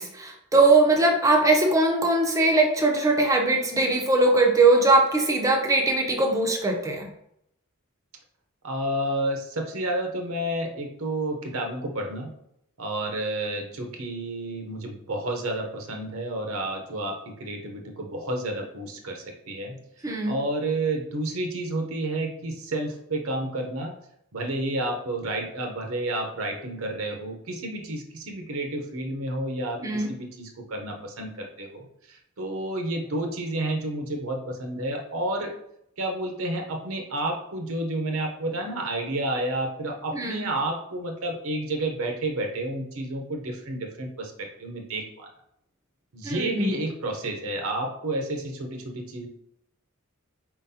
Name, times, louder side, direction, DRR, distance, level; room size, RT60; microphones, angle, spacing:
voice 1, 0.0-7.1 20.0-20.3 29.8-30.1 40.1-40.5 46.2-46.7, right 2 dB, 15° right, 1 dB, 0.7 m, -21 dB
voice 2, 8.6-12.3 12.8-19.8 20.0-23.9 24.3-35.5 36.0-45.3 46.1-49.3, right 1 dB, 65° right, 2 dB, 0.8 m, -30 dB
4.5 x 3.8 x 2.8 m, 0.74 s
head